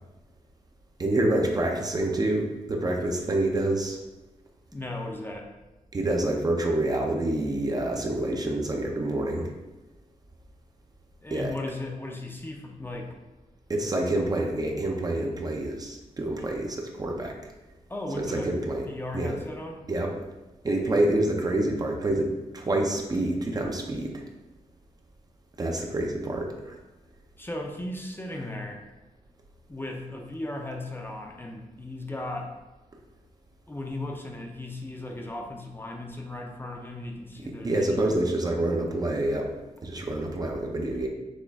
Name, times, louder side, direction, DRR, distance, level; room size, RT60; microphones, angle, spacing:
voice 1, 1.0-4.0 5.9-9.5 11.3-11.5 13.7-17.4 18.1-18.9 19.1-19.4 19.9-20.1 20.6-24.2 25.6-26.8 37.6-39.5 39.8-41.1, right 1 dB, 30° right, 1 dB, 0.6 m, -27 dB
voice 2, 4.7-5.5 11.2-13.2 17.9-18.5 18.9-19.8 27.4-28.8 29.7-32.5 33.7-38.2, left 2 dB, 15° left, 1 dB, 0.5 m, -36 dB
6.2 x 2.4 x 3.5 m, 1.1 s
wide cardioid pair, 110°, 13 cm